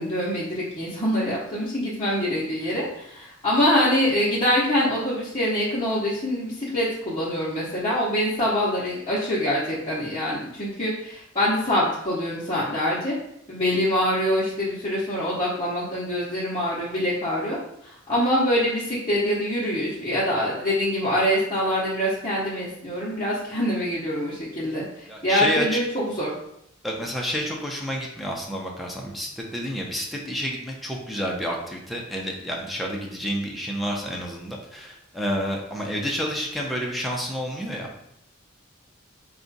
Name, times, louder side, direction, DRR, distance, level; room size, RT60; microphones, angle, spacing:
voice 1, 0.0-13.1 13.5-17.6 17.8-24.8 25.2-26.3, equal, 25° left, -10 dB, 1.0 m, -24 dB
voice 2, 25.1-25.7 26.8-38.1, equal, ahead, -1 dB, 0.7 m, -29 dB
4.7 x 2.4 x 4.0 m, 0.76 s
head